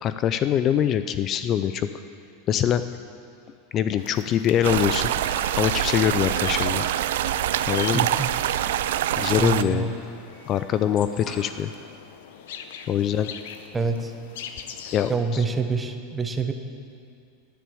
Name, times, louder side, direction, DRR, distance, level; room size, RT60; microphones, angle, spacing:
voice 1, 0.0-1.9 2.5-2.8 3.7-5.1 5.6-6.8 7.7-8.1 9.2-9.9 10.5-11.7 12.9-13.3 14.9-15.1, left 10 dB, 35° left, 11 dB, 0.4 m, -23 dB
Doorbell, 3.1-12.1, equal, 10° left, 2.9 m, -51 dB
sound 1, 4.0-15.2, left 8 dB, 75° left, 0.8 m, -42 dB
sound 2, 4.6-9.6, right 12 dB, 80° right, 0.4 m, -25 dB
voice 2, 7.8-8.3 9.4-10.0 13.7-14.1 14.8-16.5, right 4 dB, 15° right, 6 dB, 1.0 m, -27 dB
10.0 x 9.4 x 8.7 m, 2.4 s
supercardioid pair, 130°, 0 cm